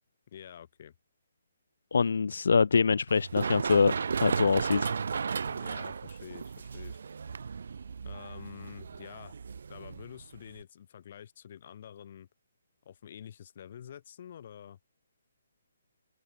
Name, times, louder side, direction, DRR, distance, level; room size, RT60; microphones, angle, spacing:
voice 1, 0.3-0.9 5.5-7.0 8.0-9.4 9.7-12.3 12.8-14.8, left 9 dB, 40° left, 4.7 m, -48 dB
voice 2, 1.9-3.9 4.2-4.9, left 5 dB, 75° left, 1.1 m, -24 dB
Run, 3.1-10.6, right 5 dB, 65° right, 0.8 m, -35 dB
hypercardioid pair, 170°, 0 cm